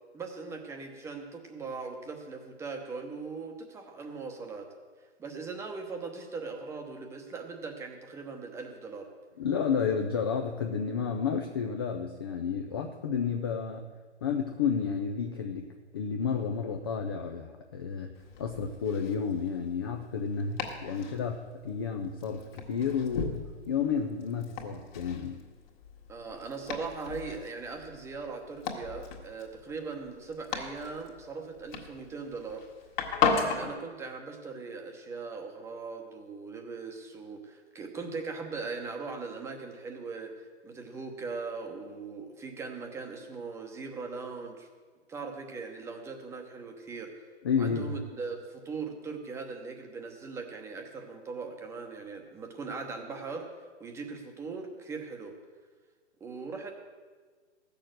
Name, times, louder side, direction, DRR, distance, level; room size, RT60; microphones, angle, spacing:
voice 1, 0.1-4.7 5.2-9.1 21.0-21.2 26.1-32.6 33.2-40.3 40.6-44.7 45.1-47.1 47.6-53.5 53.8-55.3 56.2-56.7, right 4 dB, 10° right, 3 dB, 0.9 m, -40 dB
voice 2, 9.4-13.9 14.2-15.7 15.9-18.1 18.4-25.4 47.4-47.9, left 6 dB, 20° left, 3 dB, 0.4 m, -31 dB
Domestic sounds home sounds, 18.2-33.7, left 5 dB, 40° left, 1.9 m, -37 dB
15.0 x 6.8 x 7.7 m, 1.5 s
hypercardioid pair, 145°, 35 cm